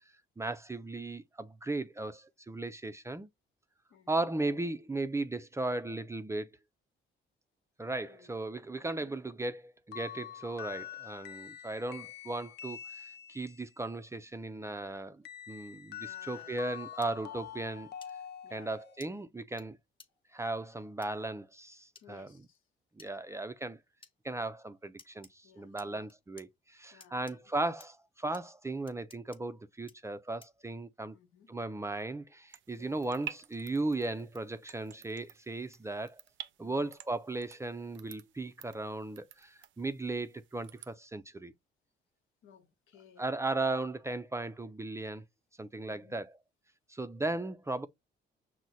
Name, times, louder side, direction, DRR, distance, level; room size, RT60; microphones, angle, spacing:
voice 1, 0.4-3.3 4.1-6.5 7.8-17.9 18.5-19.8 20.3-22.3 23.0-23.8 24.2-31.2 31.5-36.2 36.6-41.5 43.2-45.2 45.6-46.3 46.9-47.9, right 2 dB, 15° right, 0.4 m, -36 dB
voice 2, 3.9-4.3 8.0-8.4 8.8-9.2 16.0-16.6 18.4-18.7 22.0-22.6 25.4-26.1 26.9-27.5 31.1-31.5 32.8-33.0 36.6-36.9 42.4-43.3 45.8-46.3, left 7 dB, 85° left, 1.1 m, -59 dB
sound 1, 9.9-13.7 15.2-19.0, left 10 dB, 55° left, 0.5 m, -46 dB
sound 2, 17.0-17.1 18.0-18.1 19.0-19.1 19.6-19.7 20.0-20.1 21.0-21.1 22.0-22.1 23.0-23.1 24.0-24.1 25.0-25.3 25.8-26.5 27.0-27.4 27.8-27.9 28.3-28.4 28.9-29.4 29.9-30.0 30.4-30.6, left 4 dB, 25° left, 1.0 m, -55 dB
sound 3, 32.5-40.9, right 11 dB, 75° right, 0.5 m, -50 dB
6.1 x 2.1 x 4.0 m
cardioid pair, 90°, 20 cm